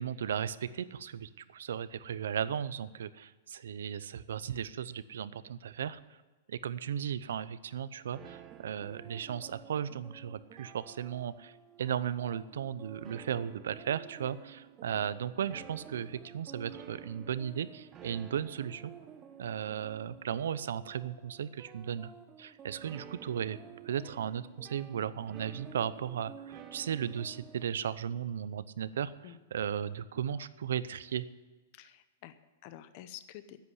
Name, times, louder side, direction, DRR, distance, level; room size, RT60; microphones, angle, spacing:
voice 1, 0.0-6.0 6.5-18.9 19.4-22.1 22.4-23.6 23.8-29.1 29.5-31.2, right 9 dB, 85° right, 16 dB, 0.7 m, -36 dB
sound 1, 8.1-27.7, right 8 dB, 20° right, 0.8 m, -51 dB
voice 2, 31.7-33.6, left 12 dB, 35° left, 12 dB, 0.7 m, -49 dB
10.5 x 8.4 x 9.9 m, 1.2 s
supercardioid pair, 175°, 0 cm